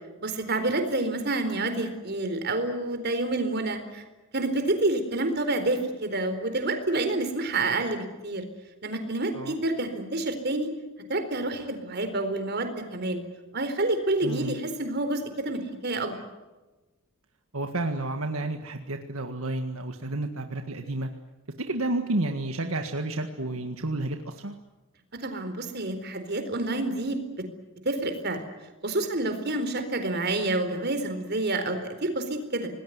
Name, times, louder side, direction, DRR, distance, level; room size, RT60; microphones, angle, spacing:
voice 1, 0.2-4.0 4.3-8.4 8.8-10.7 11.1-13.2 13.5-16.1 25.2-27.2 27.8-28.5 28.8-32.7, right 2 dB, 50° right, 8 dB, 4.2 m, -28 dB
voice 2, 14.2-14.6 17.5-21.1 21.7-24.6, right 2 dB, 75° right, 5 dB, 1.8 m, -31 dB
26.5 x 20.0 x 9.5 m, 1.1 s
head